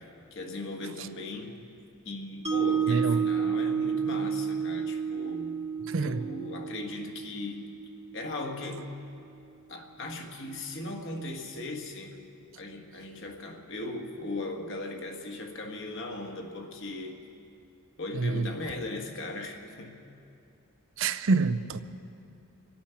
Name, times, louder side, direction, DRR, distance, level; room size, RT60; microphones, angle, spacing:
voice 1, 0.0-1.6 2.0-5.6 6.0-7.7 8.1-8.9 9.7-12.1 12.6-17.2 18.0-20.0, left 2 dB, 60° left, 1.6 m, -38 dB
Mallet percussion, 2.4-8.6, right 7 dB, 25° right, 1.0 m, -31 dB
voice 2, 2.9-3.2 5.9-6.2 18.1-18.5 21.0-21.8, right 3 dB, 60° right, 0.5 m, -26 dB
25.5 x 8.7 x 5.8 m
head